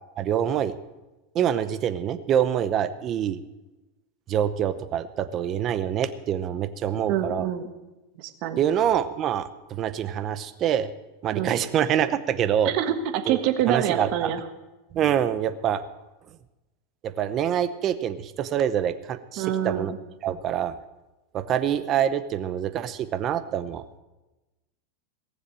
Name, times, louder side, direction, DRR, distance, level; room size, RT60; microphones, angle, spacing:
voice 1, 0.2-0.7 1.3-3.4 4.3-7.5 8.6-10.9 11.2-12.7 13.3-13.4 13.7-14.3 14.9-15.8 17.0-19.9 20.2-20.7 21.3-23.8, right 9 dB, 30° right, 12 dB, 0.8 m, -25 dB
voice 2, 7.1-7.7 8.2-8.6 11.3-11.5 12.6-14.4 19.4-20.0, right 10 dB, 45° right, 8 dB, 1.4 m, -26 dB
18.0 x 7.3 x 7.5 m, 1.1 s
supercardioid pair, 155°, 0 cm